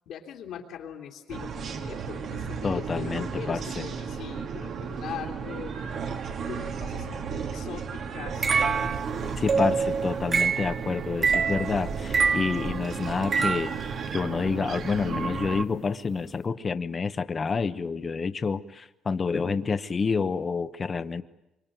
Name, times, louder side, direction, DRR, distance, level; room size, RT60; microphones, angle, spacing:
voice 1, 0.1-5.7 6.5-8.5 9.2-9.3, left 9 dB, 80° left, -3 dB, 3.0 m, -41 dB
sound 1, 1.3-15.6, right 6 dB, 60° right, 2.1 m, -34 dB
voice 2, 2.6-3.8 9.4-13.7 14.1-21.2, left 5 dB, 35° left, 11 dB, 1.1 m, -28 dB
sound 2, 8.4-13.9, right 5 dB, 40° right, 1.0 m, -26 dB
25.5 x 24.5 x 9.2 m, 0.93 s
cardioid pair, 110°, 0 cm